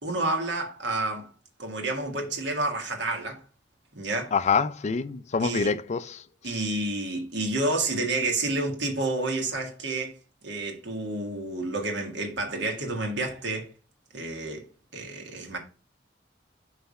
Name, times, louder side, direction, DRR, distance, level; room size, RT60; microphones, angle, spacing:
voice 1, 0.0-1.3 1.6-3.4 3.9-4.3 5.4-5.8 6.4-10.1 10.4-13.7 14.1-14.6 14.9-15.6, right 2 dB, 75° right, 1.7 m, -29 dB
voice 2, 4.3-6.2, left 5 dB, 40° left, 0.4 m, -26 dB
5.5 x 3.4 x 5.4 m
head